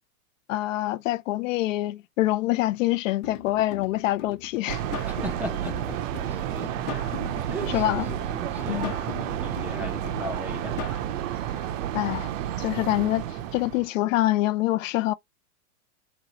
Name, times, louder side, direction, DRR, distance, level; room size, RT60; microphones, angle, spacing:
voice 1, 0.5-4.8 7.7-8.0 8.7-9.0 11.9-12.3 12.6-15.1, left 16 dB, 60° left, 0.5 m, -25 dB
sound 1, 3.2-11.0, left 10 dB, 40° left, 1.0 m, -40 dB
sound 2, 4.7-13.9, right 11 dB, 60° right, 0.8 m, -31 dB
voice 2, 5.0-6.0 6.3-6.9 7.3-10.8, equal, 5° right, 0.5 m, -38 dB
3.7 x 3.1 x 2.9 m
hypercardioid pair, 130°, 43 cm